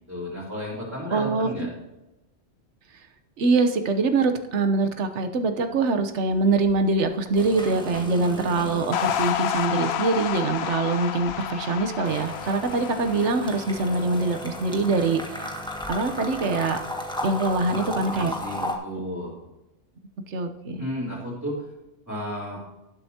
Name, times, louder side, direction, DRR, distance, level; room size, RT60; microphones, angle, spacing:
voice 1, 0.0-1.7 17.7-19.4 20.8-21.7 22.1-22.6, equal, 15° right, -7 dB, 4.0 m, -33 dB
voice 2, 1.1-1.7 3.4-15.5 15.9-16.8 17.2-18.3 20.3-20.8, right 3 dB, 75° right, 7 dB, 1.3 m, -24 dB
sound 1, 6.3-6.7 7.0-9.7 10.0-18.8, left 1 dB, 5° left, 1.5 m, -35 dB
sound 2, 8.9-15.4, left 10 dB, 65° left, 0.8 m, -30 dB
18.0 x 7.9 x 2.9 m, 0.98 s
omnidirectional pair, 1.2 m